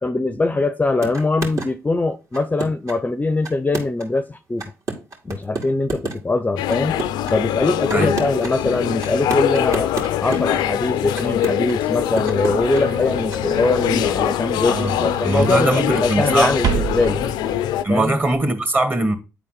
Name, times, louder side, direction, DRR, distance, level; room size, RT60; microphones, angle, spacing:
voice 1, 0.0-4.7 5.2-7.0 7.3-17.2 17.9-18.2, left 2 dB, 20° left, 0.6 m, -22 dB
sound 1, 1.0-1.7 2.3-3.0 3.4-4.2 4.6-6.2 6.7-7.3 7.9-8.5 9.0-10.7 11.1-11.7 12.2-12.8 13.3-13.4, right 3 dB, 50° right, 2.5 m, -29 dB
sound 2, 6.6-17.8, left 11 dB, 80° left, 0.4 m, -23 dB
sound 3, 12.0-18.4, right 7 dB, 65° right, 0.8 m, -31 dB
voice 2, 15.2-16.5 17.8-19.2, right 2 dB, 30° right, 1.9 m, -20 dB
9.2 x 4.1 x 4.0 m
hypercardioid pair, 55°, 7 cm